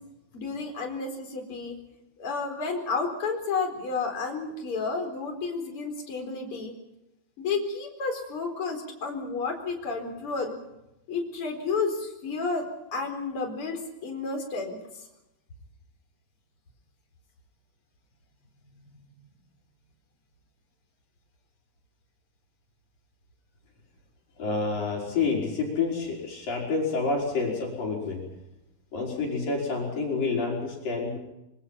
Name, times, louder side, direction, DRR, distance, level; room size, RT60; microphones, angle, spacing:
voice 1, 0.3-1.8 2.2-6.7 7.4-10.5 11.1-12.6 12.9-14.8, left 4 dB, 30° left, 2 dB, 4.7 m, -31 dB
voice 2, 24.4-28.2 28.9-31.2, left 4 dB, 45° left, -2 dB, 6.8 m, -28 dB
25.5 x 23.5 x 5.8 m, 0.90 s
omnidirectional pair, 5.5 m